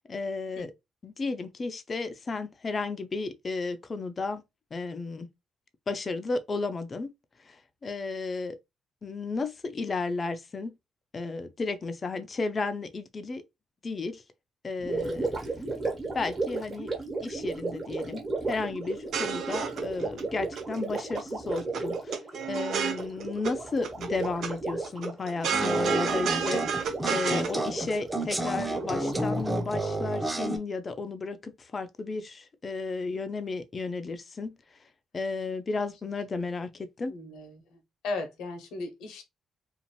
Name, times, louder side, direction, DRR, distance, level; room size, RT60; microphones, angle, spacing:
voice 1, 0.1-0.7 1.0-4.4 4.7-5.3 5.9-7.1 7.4-8.6 9.0-10.7 11.1-13.4 13.8-14.2 14.6-15.3 16.1-16.9 17.2-22.2 22.5-34.6 35.1-37.1, left 3 dB, 35° left, 0.5 m, -33 dB
Gurgling, 14.8-30.1, right 3 dB, 30° right, 1.2 m, -35 dB
sound 1, 18.9-20.2 20.6-21.2 21.5-23.5 23.8-24.5 24.8-27.5, right 7 dB, 70° right, 0.6 m, -31 dB
sound 2, 25.5-30.6, right 1 dB, 5° right, 0.7 m, -30 dB
voice 2, 37.1-39.2, left 3 dB, 90° left, 0.9 m, -37 dB
2.6 x 2.5 x 3.0 m
cardioid pair, 90°, 0 cm